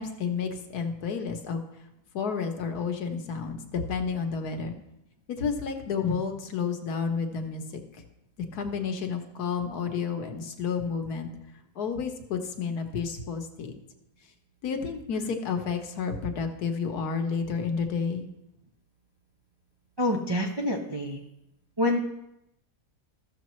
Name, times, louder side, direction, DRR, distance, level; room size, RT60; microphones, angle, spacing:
voice 1, 0.0-1.6 2.1-4.7 5.3-8.0 8.5-11.3 11.8-13.8 14.6-18.3, left 5 dB, 75° left, 5 dB, 1.5 m, -31 dB
voice 2, 20.0-21.2 21.8-22.0, left 1 dB, 30° right, 0 dB, 0.4 m, -26 dB
14.5 x 6.7 x 3.1 m, 0.84 s
omnidirectional pair, 1.7 m